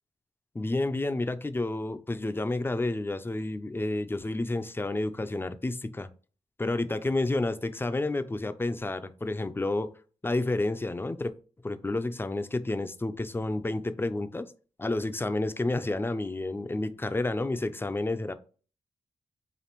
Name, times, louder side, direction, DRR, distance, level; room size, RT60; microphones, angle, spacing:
voice 1, 0.5-6.1 6.6-9.9 10.2-11.3 11.6-14.5 14.8-18.3, left 2 dB, 15° left, 11 dB, 0.4 m, -30 dB
4.9 x 2.5 x 3.0 m, 0.40 s
cardioid pair, 50°, 12 cm